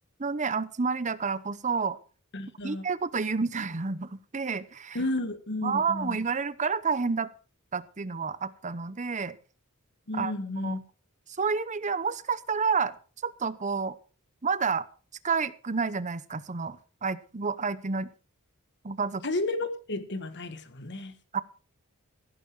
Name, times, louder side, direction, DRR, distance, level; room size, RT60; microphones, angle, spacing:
voice 1, 0.2-2.0 2.6-5.0 5.6-7.3 7.7-9.4 10.1-10.3 10.6-10.8 11.4-12.9 13.2-14.0 14.4-14.9 15.2-18.1 18.8-19.3 21.3-21.4, right 5 dB, 35° right, 0.8 m, -29 dB
voice 2, 2.3-2.8 4.9-6.2 10.1-10.8 19.2-21.2, left 2 dB, 50° left, 1.6 m, -32 dB
16.0 x 9.3 x 4.7 m
head